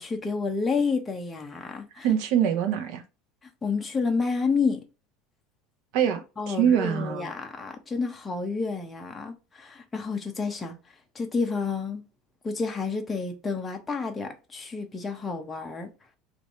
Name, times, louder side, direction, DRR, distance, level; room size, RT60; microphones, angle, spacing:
voice 1, 0.0-2.1 3.6-4.8 6.4-10.8 11.1-12.0 12.4-15.9, left 4 dB, 15° left, 0.8 m, -29 dB
voice 2, 2.0-3.0 5.9-7.3, right 9 dB, 65° right, 0.8 m, -24 dB
3.3 x 2.6 x 4.1 m
cardioid pair, 150°, 0 cm